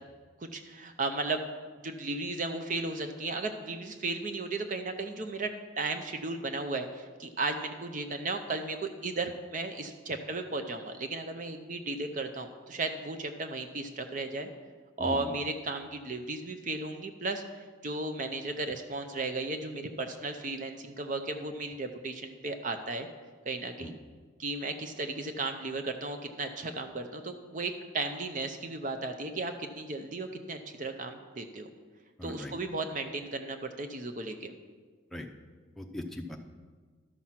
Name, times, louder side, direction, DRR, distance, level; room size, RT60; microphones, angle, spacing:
voice 1, 0.4-1.4 1.8-14.5 15.0-17.4 17.8-23.1 23.5-24.0 24.4-31.7 32.2-34.5, right 3 dB, 40° right, 7 dB, 0.6 m, -35 dB
voice 2, 15.0-15.3 23.8-23.9 32.2-32.6 35.1-35.3 35.8-36.4, left 1 dB, ahead, 2 dB, 0.6 m, -39 dB
12.5 x 6.0 x 5.8 m, 1.5 s
head